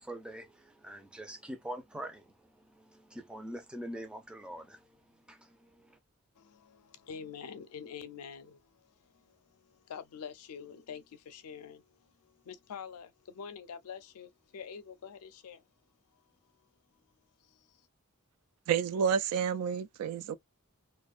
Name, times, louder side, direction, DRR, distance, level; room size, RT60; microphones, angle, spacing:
voice 1, 0.0-6.0, right 1 dB, 5° right, 0.4 m, -44 dB
voice 2, 6.4-15.7 16.1-16.2 17.4-17.8, left 7 dB, 85° left, 0.4 m, -47 dB
voice 3, 18.7-20.4, right 7 dB, 80° right, 0.3 m, -30 dB
2.4 x 2.1 x 2.4 m
head